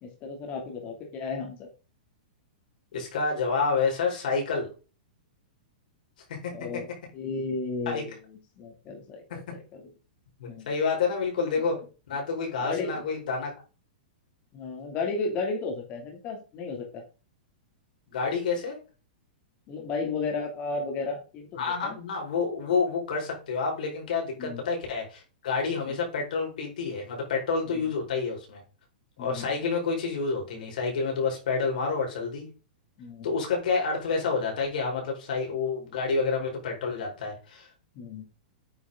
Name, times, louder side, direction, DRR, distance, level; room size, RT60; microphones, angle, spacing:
voice 1, 0.0-1.6 6.5-6.9 7.1-9.9 10.5-10.7 12.6-13.0 14.5-17.0 19.7-22.0 24.4-24.6 25.9-26.0 27.7-27.8 29.2-29.5 33.0-33.3 37.9-38.2, left 4 dB, 30° left, 1 dB, 2.9 m, -34 dB
voice 2, 2.9-4.7 6.3-6.4 7.9-8.1 9.3-9.4 10.4-11.8 12.1-13.5 18.1-18.8 21.6-28.6 29.2-32.5 33.2-37.7, left 4 dB, 65° left, -1 dB, 5.2 m, -28 dB
9.3 x 7.2 x 3.9 m, 0.34 s
hypercardioid pair, 155°, 5 cm